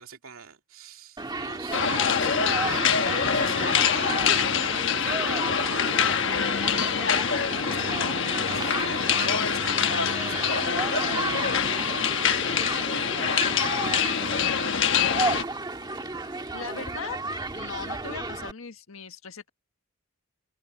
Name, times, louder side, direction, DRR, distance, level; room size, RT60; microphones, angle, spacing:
voice 1, 0.0-12.5, right 5 dB, 85° right, 2.5 m, -43 dB
Human group actions, 1.2-18.5, right 3 dB, 20° right, 1.5 m, -33 dB
sound 1, 1.7-15.4, left 7 dB, 60° left, 1.2 m, -25 dB
voice 2, 16.5-17.2 17.5-19.5, left 5 dB, 80° left, 1.5 m, -38 dB
head